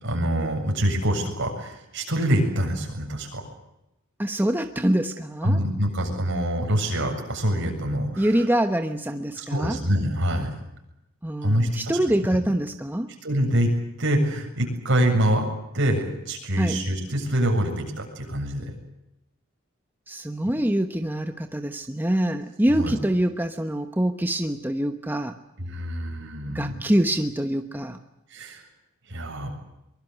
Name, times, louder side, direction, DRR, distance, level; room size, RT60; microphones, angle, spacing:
voice 1, 0.0-3.4 5.4-8.5 9.4-10.5 11.4-11.7 13.2-13.7 14.0-15.5 15.7-18.7 20.4-20.5 22.7-22.9 25.6-26.8 28.3-28.6 29.1-29.5, right 1 dB, 60° right, 3 dB, 7.5 m, -25 dB
voice 2, 4.2-5.6 8.2-9.8 11.2-13.1 16.6-16.8 20.1-25.3 26.5-28.0, right 1 dB, 10° right, 7 dB, 1.1 m, -25 dB
24.0 x 22.5 x 8.1 m, 0.89 s
head